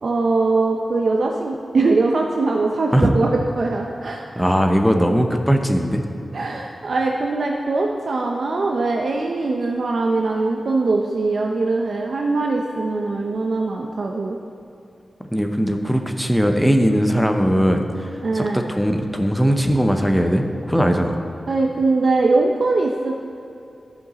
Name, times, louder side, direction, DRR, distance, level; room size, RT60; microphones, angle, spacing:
voice 1, 0.0-3.3 3.6-4.2 6.3-14.4 18.2-18.6 21.5-23.1, right 3 dB, 60° right, 0 dB, 0.5 m, -21 dB
voice 2, 4.4-6.0 15.3-17.9 18.3-21.2, equal, ahead, 4 dB, 0.6 m, -19 dB
13.5 x 5.1 x 4.0 m, 2.7 s
wide cardioid pair, 145°, 0 cm